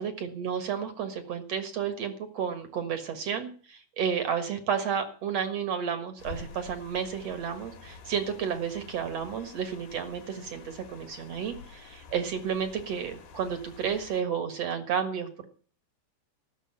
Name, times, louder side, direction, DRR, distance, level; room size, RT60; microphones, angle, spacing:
voice 1, 0.0-15.5, right 7 dB, 55° right, 9 dB, 1.8 m, -32 dB
sound 1, 6.2-14.2, left 5 dB, 80° left, 4.4 m, -48 dB
17.5 x 6.5 x 8.7 m, 0.43 s
omnidirectional pair, 4.9 m